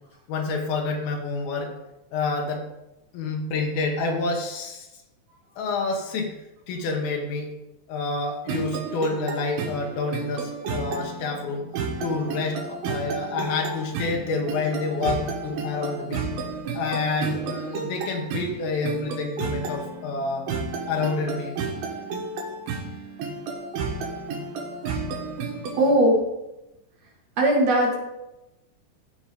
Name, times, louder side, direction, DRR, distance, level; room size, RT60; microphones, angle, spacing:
voice 1, 0.3-1.7 2.1-2.6 3.1-4.9 5.6-6.3 6.7-7.5 7.9-11.6 12.0-16.2 16.7-20.4 20.9-21.5, left 3 dB, 85° left, 1 dB, 3.1 m, -28 dB
sound 1, 8.5-25.9, right 4 dB, 85° right, 3.1 m, -32 dB
voice 2, 25.8-26.1 27.4-27.9, right 1 dB, 50° right, -1 dB, 2.6 m, -18 dB
15.0 x 5.1 x 3.7 m, 0.93 s
omnidirectional pair, 4.3 m